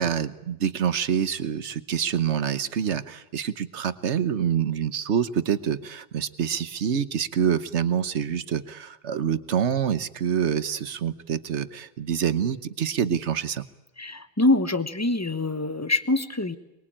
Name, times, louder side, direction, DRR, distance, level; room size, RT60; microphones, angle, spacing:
voice 1, 0.0-13.6, right 8 dB, 75° right, 14 dB, 1.3 m, -26 dB
voice 2, 14.0-16.6, left 2 dB, 15° left, 12 dB, 1.1 m, -24 dB
24.0 x 21.5 x 8.8 m, 0.97 s
omnidirectional pair, 1.2 m